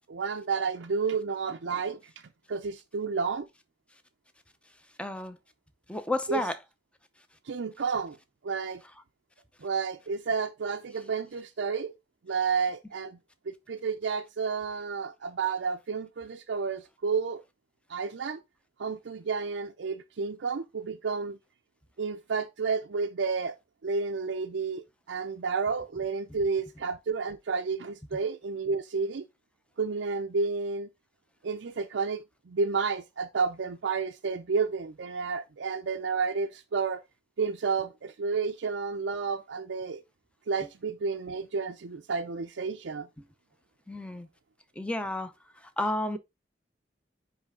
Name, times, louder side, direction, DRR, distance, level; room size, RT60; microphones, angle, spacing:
voice 1, 0.0-2.0 2.5-3.5 6.3-6.5 7.5-8.2 8.4-8.8 9.6-11.9 12.2-13.2 13.5-17.4 17.9-18.4 18.8-21.4 22.0-23.6 23.8-29.3 29.8-30.9 31.4-37.0 37.4-40.0 40.5-43.1, right 5 dB, 85° right, 0.5 m, -31 dB
voice 2, 5.0-5.4 5.9-6.6 43.9-44.3 44.8-45.3 45.8-46.2, left 1 dB, 5° left, 0.7 m, -31 dB
9.7 x 3.3 x 3.6 m
head